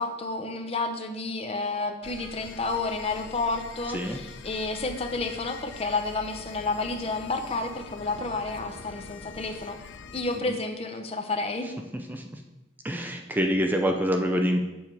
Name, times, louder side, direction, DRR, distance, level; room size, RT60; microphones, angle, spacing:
voice 1, 0.0-9.8 10.1-11.7, left 3 dB, 30° left, 6 dB, 0.7 m, -30 dB
sound 1, 2.0-10.4, left 5 dB, 70° left, 0.5 m, -44 dB
voice 2, 3.9-4.2 10.5-10.6 11.9-12.4 12.8-14.6, equal, 10° right, 3 dB, 0.5 m, -26 dB
7.2 x 6.9 x 4.6 m, 1.0 s
head